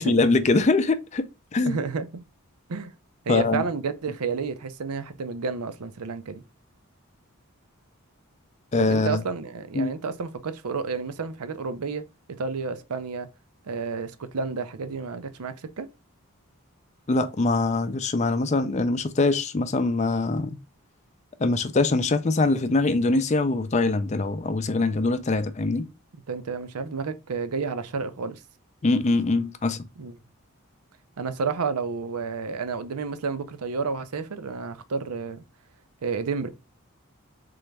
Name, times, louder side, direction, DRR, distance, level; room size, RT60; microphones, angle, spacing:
voice 1, 0.0-1.8 3.3-3.6 8.7-9.2 9.7-9.9 17.1-20.6 21.4-25.9 28.8-29.9, left 3 dB, 30° left, 0.4 m, -23 dB
voice 2, 1.6-2.1 2.7-2.9 3.3-6.4 8.8-12.0 12.4-13.3 13.7-15.9 26.3-28.4 30.0-30.1 31.2-35.4 36.0-36.5, right 4 dB, 90° right, 0.6 m, -30 dB
3.8 x 3.3 x 3.2 m
head